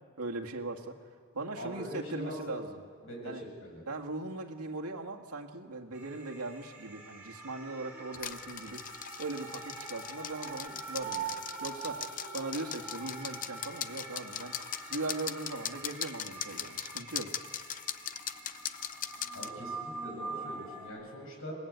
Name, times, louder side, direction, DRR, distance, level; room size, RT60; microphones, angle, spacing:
voice 1, 0.2-1.0 1.3-2.8 3.2-3.4 3.9-8.8 9.2-12.0 12.3-14.5 14.9-17.3, right 2 dB, 90° right, 1 dB, 2.0 m, -39 dB
voice 2, 1.6-2.6 3.0-3.8 19.3-21.5, equal, 65° left, 0 dB, 6.8 m, -42 dB
sound 1, 5.9-20.9, right 4 dB, 10° right, 5.5 m, -44 dB
sound 2, 8.1-19.5, left 10 dB, 35° left, 0.6 m, -40 dB
27.5 x 20.0 x 8.2 m, 2.1 s
head